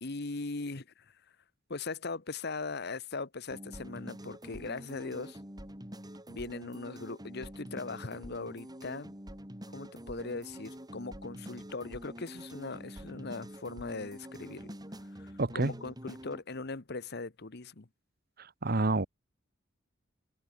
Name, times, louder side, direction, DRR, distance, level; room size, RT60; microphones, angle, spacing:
voice 1, 0.0-1.0 1.7-5.4 6.3-9.1 9.7-14.7 15.2-17.9, left 3 dB, 55° left, 1.3 m, -40 dB
sound 1, 3.5-16.4, equal, 20° right, 7.6 m, -46 dB
voice 2, 15.4-15.7 18.6-19.1, right 2 dB, 50° right, 1.2 m, -27 dB
head